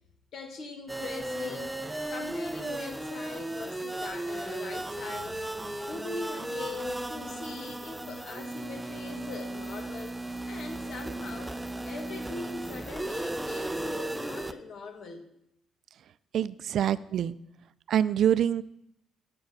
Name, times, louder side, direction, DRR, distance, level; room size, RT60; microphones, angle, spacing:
voice 1, 0.3-1.8 2.1-5.5 5.8-10.2 10.4-11.6 11.8-15.2, left 3 dB, 65° left, 1.6 m, -41 dB
sound 1, 0.9-14.5, right 1 dB, 10° right, 0.5 m, -35 dB
voice 2, 16.3-17.3 17.9-18.6, right 10 dB, 70° right, 0.3 m, -25 dB
9.4 x 7.4 x 4.8 m
cardioid pair, 90°, 0 cm